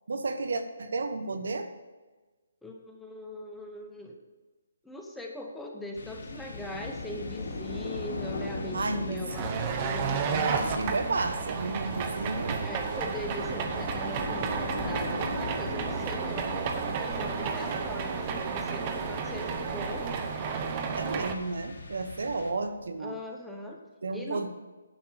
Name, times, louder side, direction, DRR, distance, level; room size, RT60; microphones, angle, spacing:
voice 1, 0.1-1.7 8.7-9.4 10.3-12.7 20.9-23.2 24.0-24.5, right 3 dB, 70° right, 8 dB, 1.1 m, -32 dB
voice 2, 2.6-4.2 4.8-10.4 12.6-20.1 23.0-23.8 24.1-24.5, left 1 dB, 5° left, 0 dB, 1.0 m, -40 dB
sound 1, 5.9-22.9, left 3 dB, 55° left, 3.4 m, -39 dB
sound 2, 9.3-21.3, right 6 dB, 25° right, 0.9 m, -32 dB
10.5 x 5.9 x 7.5 m, 1.2 s
hypercardioid pair, 160°, 0 cm